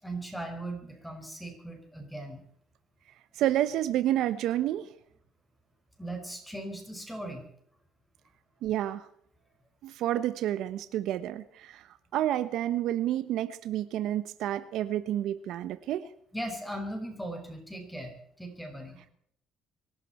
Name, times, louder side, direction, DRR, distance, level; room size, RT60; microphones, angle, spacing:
voice 1, 0.0-2.4 6.0-7.5 16.3-19.0, right 1 dB, 5° left, 4 dB, 5.4 m, -38 dB
voice 2, 3.3-4.9 8.6-9.1 9.8-16.1, right 12 dB, 75° right, 13 dB, 1.1 m, -29 dB
25.0 x 12.0 x 4.4 m, 0.67 s
cardioid pair, 115°, 0 cm